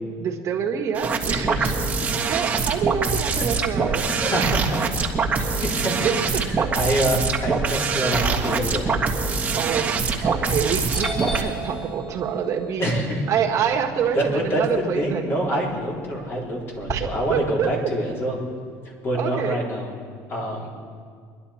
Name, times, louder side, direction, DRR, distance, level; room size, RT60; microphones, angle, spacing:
voice 1, 0.2-1.8 2.3-4.0 6.0-6.7 9.6-9.9 10.2-12.9 13.3-15.2 16.9-17.7 19.1-19.6, right 7 dB, 45° right, 2 dB, 1.7 m, -26 dB
sound 1, 0.9-11.4, right 4 dB, 20° right, 1.5 m, -24 dB
voice 2, 1.3-1.8 4.2-9.0 10.2-10.3 12.8-13.2 14.1-18.4 18.8-19.9 20.3-20.7, equal, 35° left, -2 dB, 3.7 m, -26 dB
Doorbell, 10.3-10.6 10.9-15.0 15.4-16.9, equal, 15° left, 3.8 m, -36 dB
23.5 x 11.5 x 4.4 m, 2.1 s
cardioid pair, 120°, 7 cm